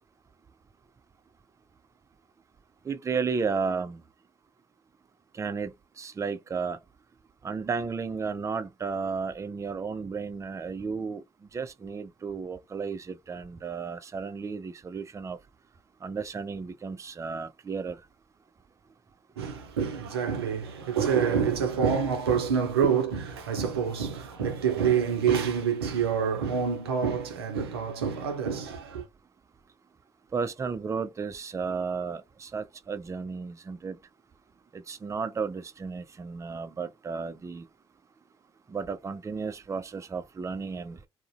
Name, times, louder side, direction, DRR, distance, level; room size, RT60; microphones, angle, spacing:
voice 1, 2.9-4.0 5.4-6.8 7.4-11.2 11.5-15.4 16.0-18.0 30.3-34.0 34.7-37.7 38.7-41.0, right 5 dB, 25° right, 0.4 m, -33 dB
voice 2, 19.4-29.0, right 7 dB, 90° right, 0.5 m, -27 dB
2.4 x 2.0 x 2.5 m
hypercardioid pair, 45°, 13 cm